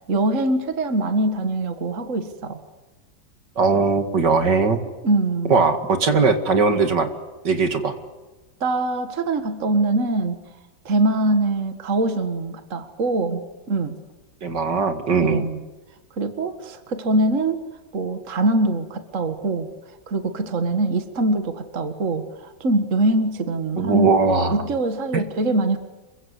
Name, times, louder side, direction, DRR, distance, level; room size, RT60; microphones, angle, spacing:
voice 1, 0.1-2.6 5.0-5.6 8.6-10.4 10.9-14.0 15.2-15.6 16.2-17.6 17.9-19.7 20.1-24.1 24.5-25.8, right 2 dB, 40° right, 8 dB, 2.1 m, -23 dB
voice 2, 3.6-4.8 5.5-7.1 7.4-7.9 14.4-15.5 23.8-24.6, right 4 dB, 65° right, 8 dB, 2.7 m, -19 dB
28.0 x 23.5 x 8.3 m, 1.2 s
omnidirectional pair, 2.1 m